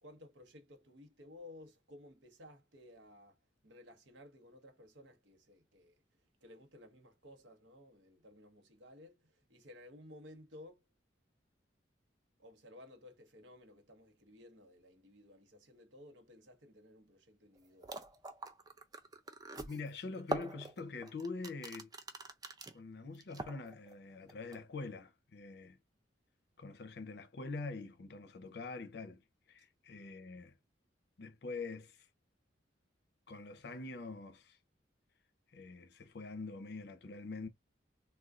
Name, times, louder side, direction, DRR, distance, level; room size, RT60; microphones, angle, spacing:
voice 1, 0.0-6.0 6.4-10.8 12.4-18.0, left 1 dB, 75° right, 0.9 m, -57 dB
sound 1, 17.6-17.7 17.8-22.8 23.1-23.9 24.3-24.6, right 2 dB, 20° right, 0.3 m, -43 dB
voice 2, 19.6-21.9 22.7-25.8 26.6-30.5 31.2-32.1 33.3-34.6 35.5-37.5, left 3 dB, 60° left, 0.5 m, -45 dB
3.6 x 2.2 x 2.3 m
head